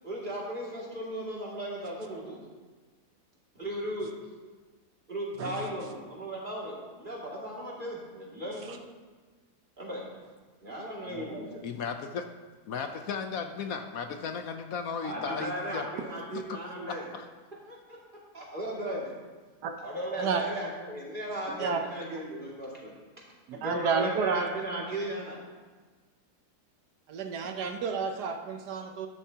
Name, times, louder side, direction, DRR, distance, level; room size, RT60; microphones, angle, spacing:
voice 1, 0.0-2.4 3.5-4.1 5.1-8.8 9.8-10.0 10.6-11.5 15.0-17.1 17.7-18.0 18.3-19.1 19.8-22.9 23.5-25.4, right 1 dB, 30° right, -5 dB, 2.6 m, -36 dB
voice 2, 11.6-12.3 12.7-15.9 16.3-16.4 17.1-17.2, left 6 dB, 70° left, 6 dB, 1.0 m, -35 dB
voice 3, 23.5-24.5 27.1-29.1, right 5 dB, 85° right, 5 dB, 1.4 m, -30 dB
12.5 x 10.5 x 2.9 m, 1.4 s
omnidirectional pair, 1.7 m